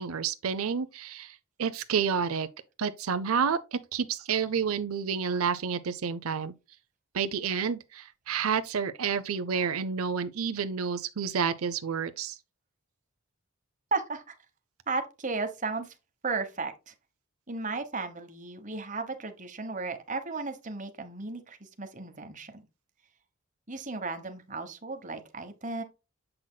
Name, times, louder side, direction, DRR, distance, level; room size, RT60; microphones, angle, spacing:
voice 1, 0.0-2.5 2.8-6.5 7.1-12.4, right 6 dB, 85° right, 0.6 m, -30 dB
voice 2, 13.9-14.4 14.9-15.9 16.2-16.9 17.5-22.6 23.7-25.8, right 3 dB, 35° right, 1.1 m, -34 dB
7.7 x 5.8 x 2.2 m
head